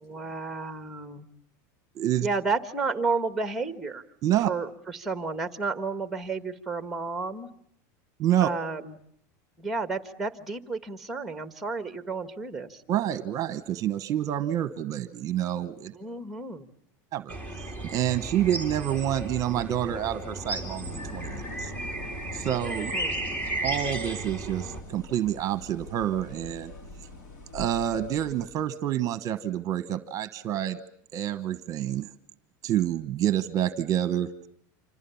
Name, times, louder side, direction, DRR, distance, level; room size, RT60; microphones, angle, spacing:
voice 1, 0.0-1.3 2.2-4.0 4.4-7.5 8.4-9.0 9.6-12.8 15.9-16.7 22.9-23.1, right 4 dB, 5° right, 10 dB, 1.6 m, -32 dB
voice 2, 2.0-2.3 4.2-4.5 8.2-8.5 12.9-15.9 17.1-17.4 17.9-21.7 22.3-22.9 23.6-26.7 27.5-30.8 31.1-32.1 32.6-34.3, right 11 dB, 35° right, 13 dB, 1.1 m, -28 dB
sound 1, 17.3-24.8, right 2 dB, 15° left, 3.4 m, -34 dB
sound 2, 20.7-28.5, left 2 dB, 85° left, 6.0 m, -44 dB
27.5 x 26.5 x 7.1 m, 0.68 s
supercardioid pair, 145°, 10 cm